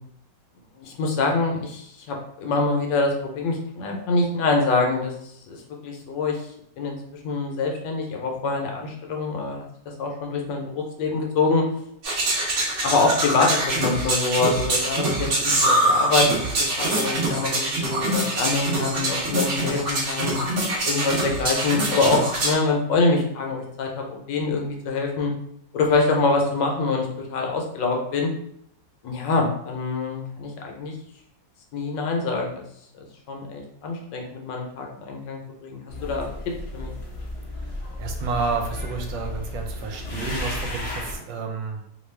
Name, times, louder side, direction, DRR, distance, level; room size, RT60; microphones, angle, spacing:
voice 1, 0.8-5.1 5.5-6.4 6.8-9.6 10.0-11.6 12.8-16.5 16.8-20.4 20.8-25.3 25.7-28.3 29.0-30.9 31.7-32.6 33.3-36.3 36.7-36.9, left 3 dB, 75° left, 1 dB, 1.2 m, -25 dB
sound 1, 12.0-22.5, right 1 dB, 60° right, 0.7 m, -24 dB
sound 2, 35.9-41.2, left 1 dB, 55° left, 0.7 m, -33 dB
voice 2, 38.0-41.8, right 4 dB, 80° right, 3 dB, 1.3 m, -30 dB
3.0 x 2.3 x 3.2 m, 0.71 s
omnidirectional pair, 2.1 m